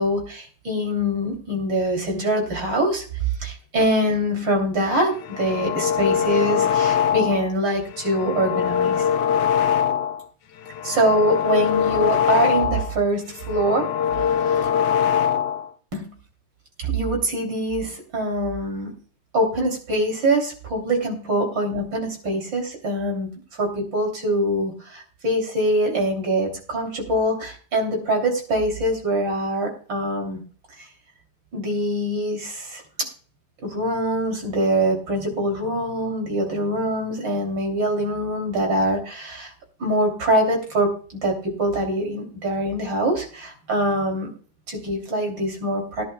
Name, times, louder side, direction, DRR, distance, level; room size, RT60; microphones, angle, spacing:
voice 1, 0.0-3.0 3.4-9.1 10.8-13.9 14.5-14.7 15.9-16.1 16.8-19.0 19.3-23.3 23.6-30.4 31.5-32.8 33.6-39.5 39.8-40.9 41.2-44.3 44.7-46.0, right 1 dB, 80° right, 2 dB, 3.9 m, -24 dB
sound 1, 5.1-7.5 7.9-10.2 10.6-13.0 13.3-15.7, left 8 dB, 75° left, 1.4 m, -22 dB
20.0 x 11.0 x 2.3 m, 0.42 s
omnidirectional pair, 2.0 m